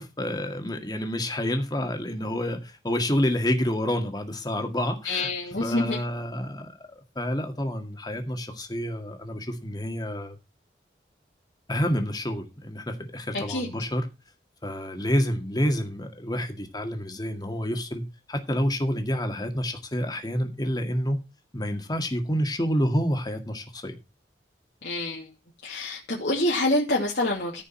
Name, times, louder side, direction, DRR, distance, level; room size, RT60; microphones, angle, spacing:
voice 1, 0.0-5.3 5.6-6.7 7.2-10.4 11.7-14.1 14.6-18.0 18.3-21.2 21.5-24.0, equal, 25° left, 2.0 m, -28 dB
voice 2, 5.0-6.0 13.3-13.7 24.8-25.3 25.6-27.6, left 2 dB, 75° left, 2.6 m, -26 dB
14.5 x 5.5 x 5.6 m
head